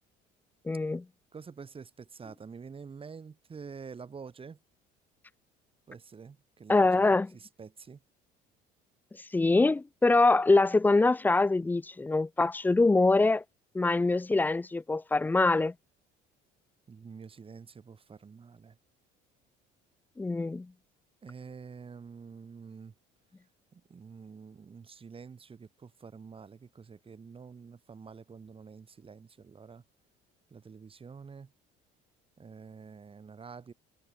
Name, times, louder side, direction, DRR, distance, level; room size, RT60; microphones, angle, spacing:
voice 1, 0.7-1.0 6.7-7.3 9.3-13.4 13.7-15.7 20.2-20.7, left 3 dB, 10° left, 0.3 m, -24 dB
voice 2, 1.3-4.6 5.9-6.9 7.3-8.0 16.9-18.8 21.2-22.9 23.7-29.8 30.5-31.5 32.4-33.7, right 5 dB, 30° right, 3.3 m, -47 dB
cardioid pair, 105°, 20 cm